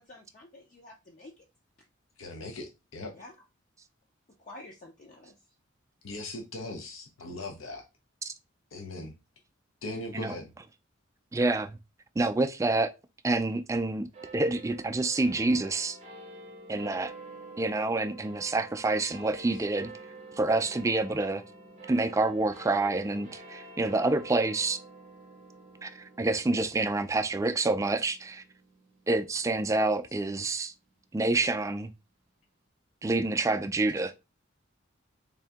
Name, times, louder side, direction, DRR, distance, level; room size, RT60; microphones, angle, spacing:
voice 1, 0.0-1.4 1.8-1.9 3.1-3.3 4.4-5.4, left 2 dB, 40° left, 0.6 m, -49 dB
voice 2, 2.2-3.1 6.0-7.8 8.7-9.1 9.8-10.5, left 2 dB, 85° left, 0.7 m, -39 dB
voice 3, 11.3-11.8 12.2-12.9 13.2-14.1 14.3-16.0 16.7-17.1 17.6-19.9 20.4-21.4 21.9-24.8 25.8-28.4 29.1-30.7 31.1-31.9 33.0-34.1, right 2 dB, 15° right, 0.3 m, -27 dB
sound 1, 14.1-30.9, right 2 dB, 35° right, 0.7 m, -48 dB
3.6 x 2.7 x 3.4 m
head